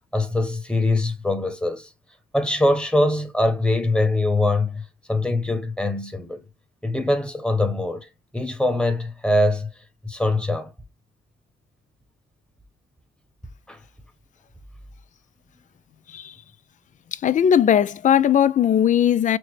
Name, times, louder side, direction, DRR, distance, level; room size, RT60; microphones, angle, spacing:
voice 1, 0.1-1.9 2.3-6.4 6.8-8.1 8.3-9.7 10.0-10.7 13.7-13.8, left 2 dB, 5° left, 1.2 m, -23 dB
voice 2, 17.1-19.4, left 9 dB, 40° left, 0.4 m, -18 dB
6.1 x 2.1 x 3.2 m
cardioid pair, 90°, 20 cm